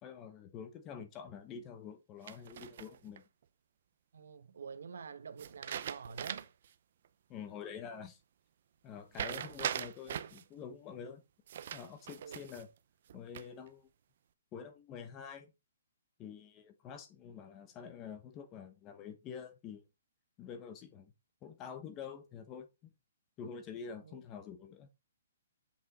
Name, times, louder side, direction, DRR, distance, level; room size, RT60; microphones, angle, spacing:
voice 1, 0.0-3.2 7.3-8.2 8.8-11.2 11.7-12.7 13.1-13.9 14.5-15.5 16.2-19.8 20.4-21.1 21.4-22.9 23.4-24.9, left 7 dB, 15° left, 0.9 m, -47 dB
sound 1, 2.3-3.2 5.4-6.7 7.0-7.1 9.1-10.4 11.5-12.7 13.1-13.7, right 9 dB, 40° right, 0.7 m, -41 dB
voice 2, 4.1-6.5 12.2-12.4 24.0-24.2, right 6 dB, 75° right, 1.2 m, -47 dB
8.0 x 6.1 x 4.2 m
hypercardioid pair, 175°, 0 cm